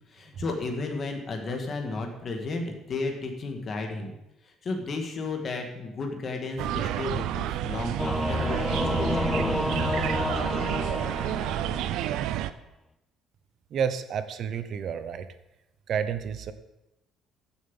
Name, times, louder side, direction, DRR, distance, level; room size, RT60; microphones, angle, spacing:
voice 1, 0.1-4.1 4.4-9.6, left 3 dB, 30° left, 3 dB, 1.9 m, -33 dB
sound 1, 6.6-12.5, right 12 dB, 70° right, 0.6 m, -30 dB
Singing / Musical instrument, 8.0-12.1, left 2 dB, 10° left, 0.4 m, -29 dB
voice 2, 13.7-15.3 15.9-16.5, right 7 dB, 40° right, 11 dB, 0.8 m, -30 dB
14.5 x 7.3 x 5.6 m, 0.93 s
cardioid pair, 175°, 0 cm